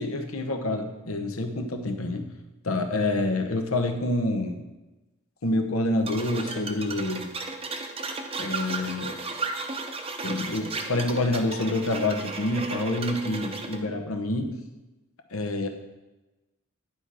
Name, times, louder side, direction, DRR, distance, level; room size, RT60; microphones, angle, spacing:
voice 1, 0.0-2.3 2.6-4.6 5.4-7.3 8.4-9.2 10.2-14.5 15.3-15.7, left 2 dB, 80° left, 6 dB, 0.9 m, -27 dB
sound 1, 6.1-13.8, right 3 dB, 25° right, 0.6 m, -34 dB
10.5 x 4.4 x 4.8 m, 1.1 s
head